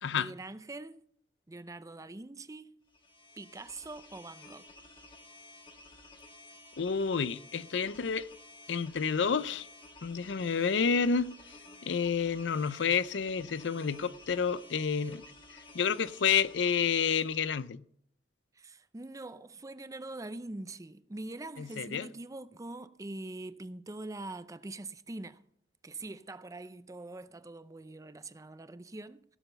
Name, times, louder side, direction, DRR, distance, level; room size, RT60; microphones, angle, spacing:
voice 1, 0.1-1.0 1.5-2.7 3.4-4.7 18.5-25.4 25.8-29.2, right 2 dB, 20° right, 0.5 m, -43 dB
sound 1, 2.9-17.7, left 2 dB, 30° left, 1.5 m, -53 dB
voice 2, 6.8-8.3 8.7-9.7 10.0-11.3 11.8-15.2 15.7-17.8 21.6-22.1, left 6 dB, 85° left, 0.5 m, -29 dB
16.5 x 6.9 x 6.7 m
head